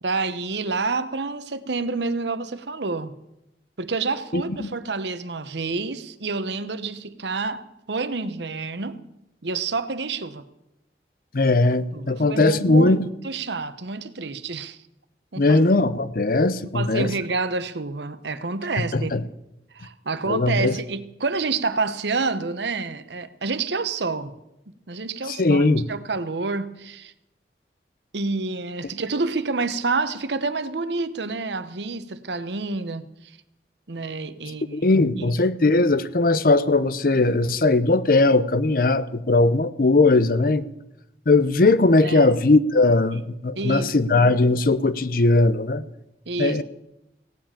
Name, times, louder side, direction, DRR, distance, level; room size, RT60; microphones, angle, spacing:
voice 1, 0.0-3.1 3.8-9.0 9.4-10.4 11.9-13.0 13.2-14.8 15.3-15.6 16.7-19.1 19.7-24.3 24.9-25.6 25.9-27.1 28.1-33.3 33.9-34.9 35.2-35.3 42.0-42.3 43.6-43.9 46.3-46.6, right 3 dB, 80° right, 0.9 m, -28 dB
voice 2, 4.3-4.7 11.3-13.1 15.4-17.1 18.9-19.2 20.3-20.8 25.3-25.8 34.7-40.6 41.3-45.9 46.4-46.6, left 2 dB, 50° left, 0.7 m, -19 dB
17.0 x 7.4 x 8.9 m
head